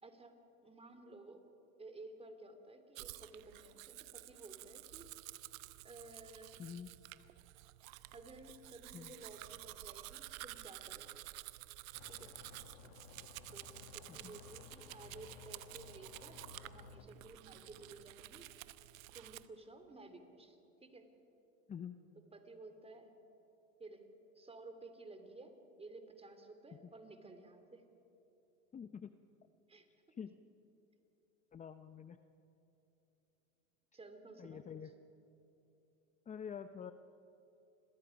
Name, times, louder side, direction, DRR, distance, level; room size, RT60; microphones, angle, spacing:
voice 1, 0.0-1.4 1.8-5.1 5.8-6.6 8.1-11.2 12.1-12.4 13.5-18.5 19.1-21.1 22.3-23.1 23.8-24.0 24.3-27.8 29.7-30.2 33.9-34.7, right 2 dB, 15° right, 7 dB, 2.8 m, -55 dB
Domestic sounds home sounds, 3.0-19.5, right 17 dB, 80° right, 0.9 m, -52 dB
sound 1, 11.9-17.1, left 7 dB, 80° left, 1.3 m, -57 dB
voice 2, 21.7-22.0 28.7-29.1 30.1-30.4 31.5-32.2 34.4-34.9 36.3-36.9, left 7 dB, 20° left, 10 dB, 0.7 m, -47 dB
30.0 x 22.5 x 5.2 m, 3.0 s
supercardioid pair, 105°, 39 cm